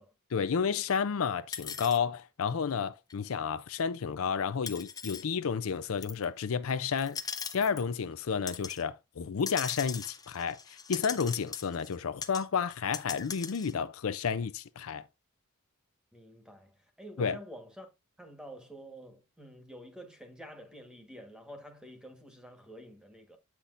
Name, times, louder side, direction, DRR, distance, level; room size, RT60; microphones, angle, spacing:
voice 1, 0.3-7.2 7.5-15.0 17.2-17.4, left 6 dB, 70° left, 0.5 m, -31 dB
sound 1, 1.5-2.0 3.1-3.2 4.7-5.2 6.0-6.2 7.0-7.9 8.5-8.8 9.4-12.0 12.2-12.4 12.7-13.7, left 6 dB, 15° left, 0.6 m, -40 dB
voice 2, 16.1-17.9 18.2-23.4, equal, 5° right, 1.3 m, -49 dB
8.4 x 5.9 x 2.5 m
head